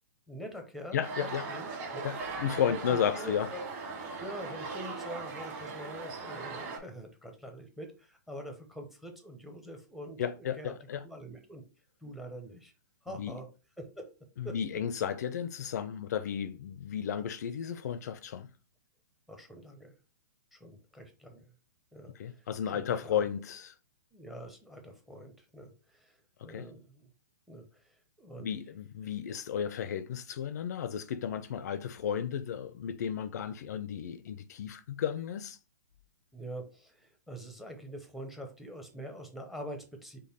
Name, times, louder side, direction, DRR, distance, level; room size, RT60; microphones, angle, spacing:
voice 1, 0.3-2.0 2.7-3.7 4.2-10.2 10.6-10.7 11.0-11.6 12.0-12.7 13.0-13.5 13.8-14.1 14.4-14.6 15.3-15.4 19.3-19.9 20.5-21.4 21.9-23.3 24.1-26.2 26.4-27.1 27.5-28.5 36.3-40.2, equal, ahead, 0.6 m, -45 dB
voice 2, 0.9-1.5 2.0-3.5 10.2-11.0 13.1-13.4 14.4-18.5 22.2-23.7 26.4-26.7 28.4-35.6, left 8 dB, 60° left, 0.4 m, -33 dB
sound 1, 1.0-6.8, right 4 dB, 35° right, 1.5 m, -39 dB
5.2 x 2.2 x 4.0 m
hypercardioid pair, 160°, 10 cm